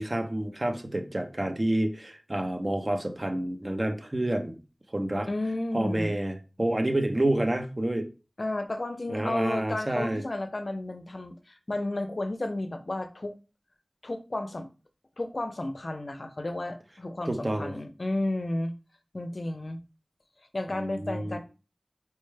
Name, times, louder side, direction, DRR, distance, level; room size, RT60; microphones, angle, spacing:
voice 1, 0.0-4.6 4.9-5.3 5.7-8.1 9.1-10.2 17.3-17.7 20.7-21.4, right 1 dB, 35° right, 5 dB, 0.6 m, -29 dB
voice 2, 5.3-6.2 8.4-13.4 14.0-14.7 15.2-18.7 19.1-19.8 20.5-21.4, left 2 dB, 60° left, 8 dB, 0.4 m, -32 dB
4.5 x 2.1 x 3.2 m, 0.33 s
wide cardioid pair, 50°, 0 cm